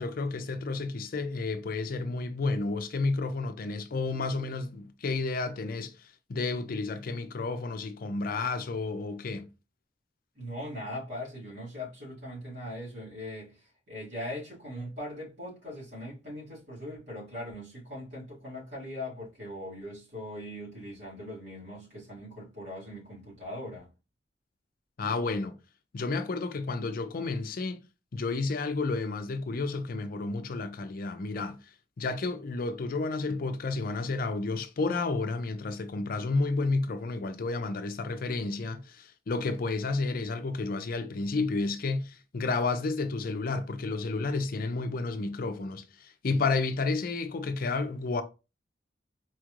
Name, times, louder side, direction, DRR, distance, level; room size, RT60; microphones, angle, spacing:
voice 1, 0.0-9.5 25.0-25.6 25.9-27.8 28.1-48.2, left 3 dB, 55° left, 0.5 m, -31 dB
voice 2, 10.3-23.9, left 1 dB, 75° right, 2.2 m, -40 dB
4.3 x 3.1 x 2.4 m
head